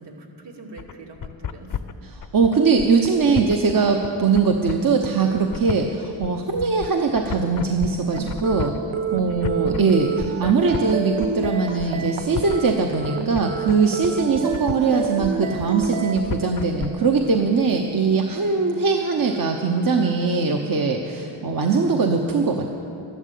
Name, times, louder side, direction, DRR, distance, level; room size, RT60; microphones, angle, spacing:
voice 1, 0.0-1.8 3.2-3.6 9.2-9.8 14.1-14.5, right 3 dB, 60° right, 0 dB, 2.5 m, -41 dB
sound 1, 0.8-16.9, left 8 dB, 45° left, 0.7 m, -33 dB
voice 2, 2.3-8.7 9.1-22.7, right 4 dB, 45° right, 3 dB, 1.0 m, -21 dB
sound 2, 8.1-16.1, right 6 dB, 85° right, 1.1 m, -29 dB
13.0 x 12.0 x 8.4 m, 2.8 s
wide cardioid pair, 100°, 47 cm